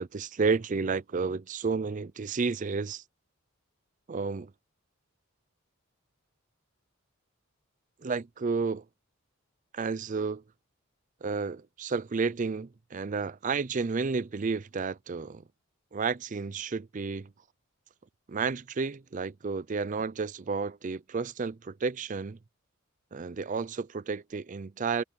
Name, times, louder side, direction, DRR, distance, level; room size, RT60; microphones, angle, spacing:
voice 1, 0.0-3.0 4.1-4.5 8.0-8.8 9.7-10.4 11.2-15.4 15.9-17.3 18.3-22.4 23.1-25.0, right 4 dB, 35° right, 0.5 m, -31 dB
head